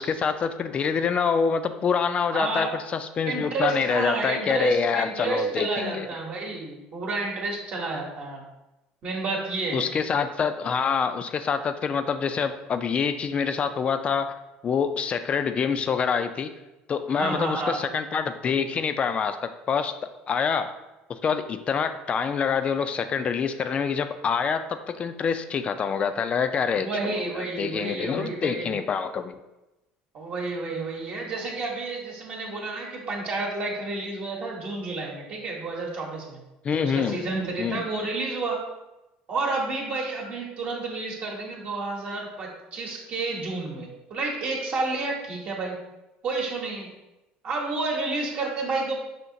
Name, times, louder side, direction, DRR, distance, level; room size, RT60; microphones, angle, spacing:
voice 1, 0.0-6.1 9.7-14.3 14.6-16.5 16.9-20.0 20.3-20.8 21.1-29.3 36.6-37.2 37.6-37.9, left 6 dB, 35° left, 10 dB, 0.3 m, -26 dB
voice 2, 2.3-2.7 3.2-8.4 9.0-9.8 17.1-17.8 26.7-28.8 30.1-36.4 36.8-38.6 39.3-45.8 46.2-46.9 47.4-48.9, right 3 dB, 50° right, -2 dB, 1.0 m, -30 dB
5.7 x 2.8 x 2.6 m, 0.98 s
supercardioid pair, 105°, 3 cm